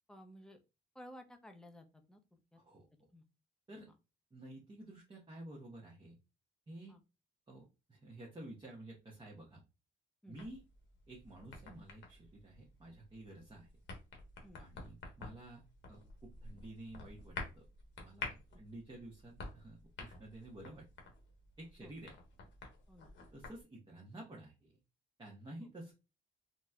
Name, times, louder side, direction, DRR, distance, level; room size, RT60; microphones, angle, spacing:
voice 1, 0.1-0.6 0.9-2.6 3.1-3.2 6.9-7.0 10.2-10.4 14.4-14.6 18.5-18.6 21.8-21.9 22.9-23.1 25.6-25.7, equal, 5° left, 5 dB, 0.6 m, -55 dB
voice 2, 2.6-2.9 3.7-3.9 4.3-6.2 6.7-6.9 7.5-9.6 10.3-10.6 11.1-13.7 14.6-17.7 18.0-20.9 21.6-22.2 23.3-24.8 25.2-25.9, right 1 dB, 25° right, -2 dB, 0.9 m, -52 dB
sound 1, 10.4-23.6, left 3 dB, 70° left, 1.0 m, -50 dB
4.0 x 2.1 x 2.3 m, 0.28 s
cardioid pair, 90°, 20 cm